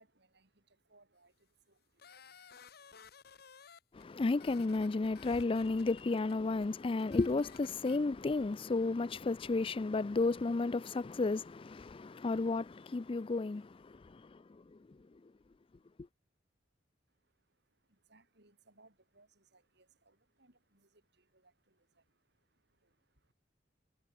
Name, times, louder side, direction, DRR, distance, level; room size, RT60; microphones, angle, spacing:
voice 1, 0.0-3.1 17.1-23.3, right 2 dB, 60° right, 6.8 m, -69 dB
sound 1, 2.0-4.0 4.3-6.3 6.6-6.7 7.0-8.0, left 7 dB, 55° left, 1.4 m, -56 dB
voice 2, 3.9-14.8, left 3 dB, 30° left, 0.4 m, -33 dB
head